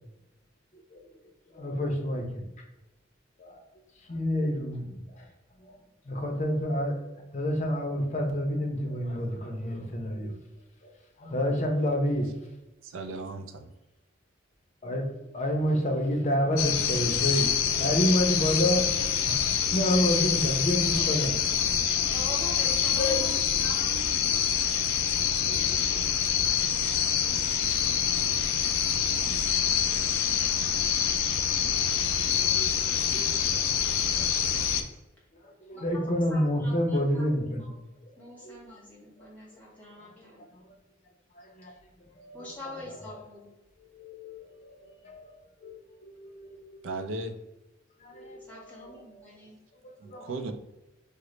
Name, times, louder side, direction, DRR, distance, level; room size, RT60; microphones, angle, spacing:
voice 1, 1.5-2.5 3.4-3.6 4.1-5.2 5.6-5.8 6.1-7.0 7.3-10.3 11.2-12.3 14.8-15.1 15.3-22.2 23.0-23.4 25.5-25.8 26.1-26.3 32.3-34.4 35.4-37.7 38.4-38.6 39.2-39.3 40.2-40.3 41.4-41.7 42.1-42.5 43.1-43.2 43.9-45.3 45.6-46.8 48.0-49.2 49.8-50.3, equal, 35° left, 2 dB, 0.6 m, -29 dB
voice 2, 12.8-13.7 46.8-47.4 50.0-50.5, right 3 dB, 70° right, 8 dB, 0.4 m, -36 dB
sound 1, 16.6-34.8, left 8 dB, 90° left, 0.4 m, -26 dB
voice 3, 22.1-24.1 35.7-37.7 38.1-40.5 41.7-41.8 42.3-43.5 48.5-49.6, left 1 dB, 10° left, -6 dB, 1.1 m, -44 dB
3.7 x 2.1 x 3.1 m, 1.0 s
head